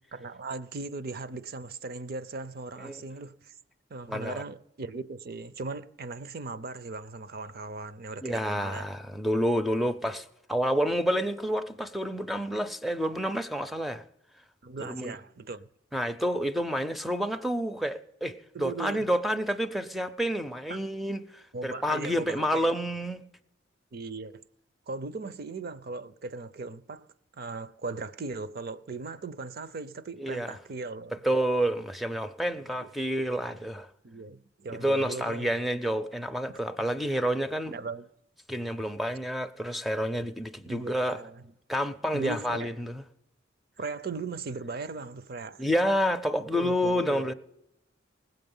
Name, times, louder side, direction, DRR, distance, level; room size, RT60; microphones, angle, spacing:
voice 1, 0.1-3.5 3.9-8.9 14.6-15.7 18.5-19.0 20.7-20.8 21.5-22.7 23.9-24.4 24.9-27.1 27.3-31.2 32.6-32.9 34.0-35.6 37.7-38.1 40.7-41.4 42.1-42.7 43.8-45.6 46.5-47.2, right 3 dB, 50° right, 0.5 m, -38 dB
voice 2, 4.1-4.4 8.2-14.0 14.8-15.2 15.9-23.2 30.2-30.6 31.2-33.9 34.7-37.8 38.5-41.2 41.7-43.0 45.6-47.3, equal, ahead, 0.5 m, -29 dB
19.0 x 7.8 x 5.4 m
head